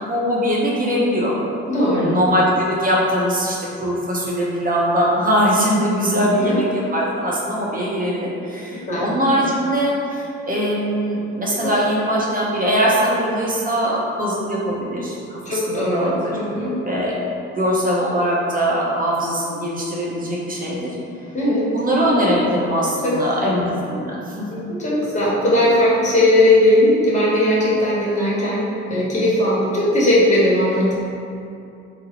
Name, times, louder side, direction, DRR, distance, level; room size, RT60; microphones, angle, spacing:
voice 1, 0.0-1.3 2.0-16.4 16.8-17.1 17.5-20.9 21.7-24.5, equal, 30° right, -5 dB, 0.9 m, -21 dB
voice 2, 1.7-2.1 6.4-6.6 8.9-9.1 11.6-11.7 15.4-16.7 21.3-21.7 23.0-23.1 23.4-23.5 24.5-31.0, left 1 dB, 25° left, -7 dB, 1.1 m, -18 dB
3.6 x 2.1 x 2.9 m, 2.6 s
supercardioid pair, 55°, 29 cm